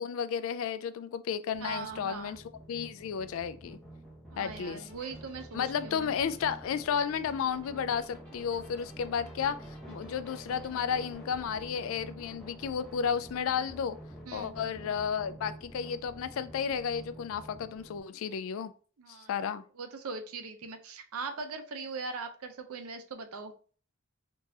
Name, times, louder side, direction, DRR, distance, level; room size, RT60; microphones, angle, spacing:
voice 1, 0.0-2.4 2.7-3.8 4.4-4.9 5.5-9.6 9.9-14.0 14.3-18.7 19.3-19.6, left 7 dB, 65° left, 13 dB, 0.3 m, -32 dB
sound 1, 1.5-18.0, right 1 dB, 5° left, 0.7 m, -48 dB
voice 2, 1.6-2.4 4.3-6.1 14.2-14.5 19.0-19.3 19.8-23.5, right 4 dB, 80° right, 8 dB, 0.6 m, -40 dB
sound 2, 4.5-11.2, right 1 dB, 20° right, 1.6 m, -59 dB
3.7 x 2.5 x 2.7 m, 0.40 s
head